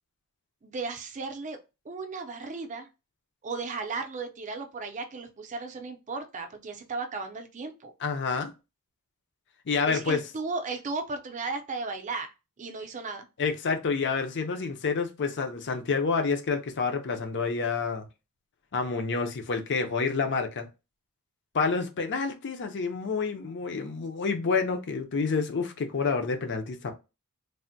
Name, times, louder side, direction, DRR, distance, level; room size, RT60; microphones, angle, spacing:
voice 1, 0.6-1.6 1.8-2.9 3.4-7.9 9.9-13.3, right 4 dB, 35° right, 0.5 m, -35 dB
voice 2, 8.0-8.5 9.7-10.2 13.4-18.1 18.7-20.7 21.5-26.9, left 4 dB, 55° left, 0.5 m, -28 dB
3.4 x 2.1 x 2.6 m
head